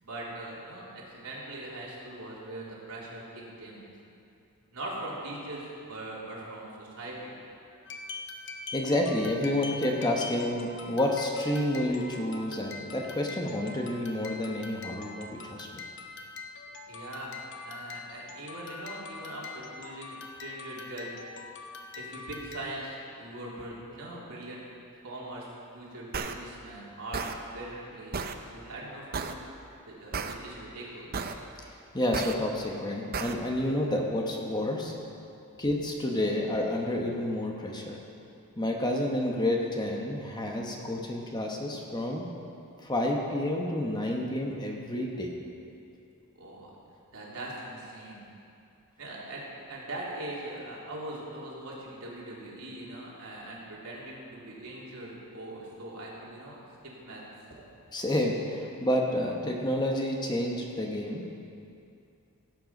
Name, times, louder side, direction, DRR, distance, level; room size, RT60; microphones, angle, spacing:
voice 1, 0.0-3.9 4.7-7.3 16.9-17.3 17.6-21.1 21.9-24.6 25.0-25.5 25.7-27.3 27.5-29.5 29.9-31.4 46.3-46.7 47.1-48.2 49.0-49.4 49.7-57.2, right 1 dB, 75° right, -5 dB, 3.0 m, -41 dB
sound 1, 7.8-22.9, left 4 dB, 50° left, 0.9 m, -43 dB
voice 2, 8.7-15.8 31.9-34.9 35.6-38.0 38.6-42.2 42.8-45.3 57.9-61.3, left 1 dB, 20° left, 0 dB, 1.0 m, -29 dB
sound 2, 26.1-26.3 27.1-27.3 28.1-28.3 29.1-29.3 30.1-30.3 31.1-31.3 32.1-32.3 33.1-33.3, right 5 dB, 40° right, 0.6 m, -32 dB
16.5 x 7.7 x 5.3 m, 2.6 s
head